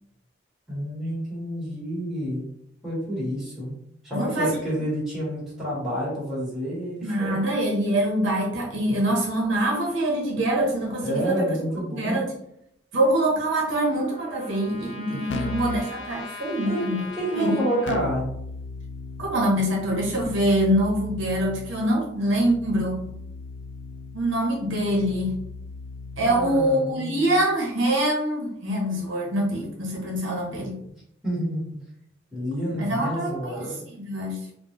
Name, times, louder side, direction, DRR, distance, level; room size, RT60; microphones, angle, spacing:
voice 1, 0.7-2.4 2.8-3.7 4.0-7.4 11.0-12.2 16.7-16.9 17.2-18.3 26.2-27.3 31.2-31.8 32.3-33.8, equal, 5° right, -8 dB, 1.5 m, -29 dB
voice 2, 4.1-4.6 7.0-11.5 11.9-12.3 12.9-17.1 17.4-17.6 19.2-23.1 24.1-25.4 26.2-30.8 32.8-33.6 33.9-34.4, right 1 dB, 75° right, -1 dB, 0.9 m, -24 dB
Trumpet, 13.4-17.9, left 3 dB, 90° left, 0.7 m, -41 dB
Keyboard (musical), 15.3-15.9 17.9-26.7, left 4 dB, 60° left, 0.3 m, -37 dB
3.8 x 2.3 x 2.9 m, 0.75 s
head